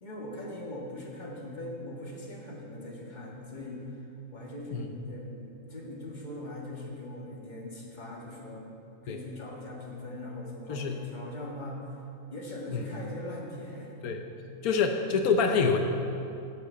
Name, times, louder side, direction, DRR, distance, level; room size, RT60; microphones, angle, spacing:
voice 1, 0.0-3.9 4.3-8.6 9.0-11.8 12.3-14.0, left 1 dB, 30° left, -2 dB, 1.8 m, -41 dB
voice 2, 14.6-15.8, left 5 dB, 85° left, 5 dB, 1.3 m, -26 dB
10.5 x 7.5 x 6.9 m, 2.8 s
omnidirectional pair, 1.5 m